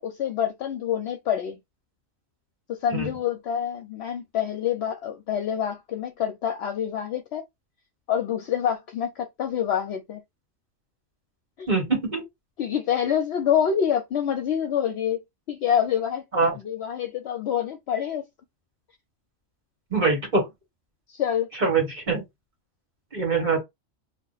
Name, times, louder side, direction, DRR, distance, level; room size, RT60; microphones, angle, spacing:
voice 1, 0.0-1.6 2.7-7.4 8.1-10.2 11.6-11.7 12.6-15.2 15.5-18.2 21.1-21.5, left 9 dB, 65° left, 0.8 m, -26 dB
voice 2, 11.7-12.2 16.3-16.5 19.9-20.5 21.6-22.2 23.1-23.6, right 4 dB, 35° right, 1.5 m, -23 dB
2.8 x 2.3 x 3.9 m
omnidirectional pair, 1.3 m